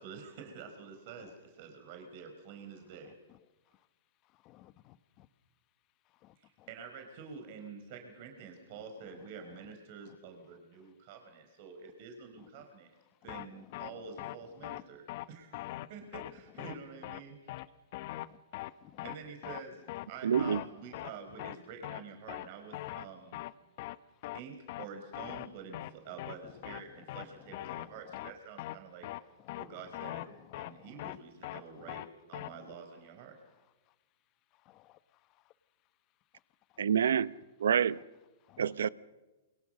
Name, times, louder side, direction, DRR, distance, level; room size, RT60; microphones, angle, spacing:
voice 1, 0.0-3.1 6.4-12.9 13.2-17.5 19.0-23.4 24.3-29.1 29.6-33.4, right 5 dB, 50° right, 4.9 m, -48 dB
voice 2, 4.4-5.3 6.2-6.7 10.1-10.2 13.3-14.3 18.3-18.4 18.8-19.0 22.9-23.0 26.4-26.5 27.7-27.9 29.4-29.8 30.6-31.2 31.8-32.0 32.4-32.7 34.6-35.0 36.7-36.8 38.5-38.9, left 15 dB, 35° left, 1.4 m, -58 dB
sound 1, 13.3-13.5 13.7-13.9 14.2-14.4 14.6-14.8 15.1-15.3 15.5-15.9 16.1-16.3 16.6-16.8 17.0-17.2 17.5-17.7 17.9-18.3 18.5-18.7 19.0-19.2 19.4-19.6 19.9-20.1 20.3-20.7 20.9-21.1 21.4-21.6 21.8-22.0 22.3-22.5 22.7-23.1 23.3-23.5 23.8-24.0 24.2-24.4 24.7-24.9 25.1-25.5 25.7-25.9 26.2-26.4 26.6-26.8 27.1-27.3 27.5-27.9 28.1-28.3 28.6-28.8 29.0-29.2 29.5-29.7 29.9-30.3 30.5-30.7 31.0-31.2 31.4-31.6 31.9-32.1 32.3-32.5, left 17 dB, 50° left, 1.0 m, -40 dB
voice 3, 20.2-20.6 36.8-37.3 37.6-38.0 38.6-38.9, right 8 dB, 80° right, 0.9 m, -27 dB
29.0 x 23.5 x 6.6 m
hypercardioid pair, 130°, 0 cm